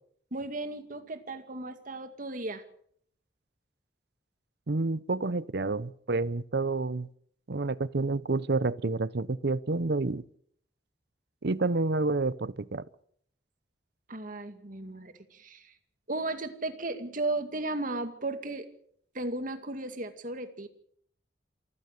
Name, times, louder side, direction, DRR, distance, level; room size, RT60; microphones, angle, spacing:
voice 1, 0.3-2.6 14.1-15.7 16.1-18.7 19.1-20.7, right 2 dB, 50° right, 2.2 m, -35 dB
voice 2, 4.7-7.1 7.5-10.2 11.4-12.9, right 3 dB, 65° right, 0.8 m, -29 dB
27.0 x 15.5 x 6.7 m
head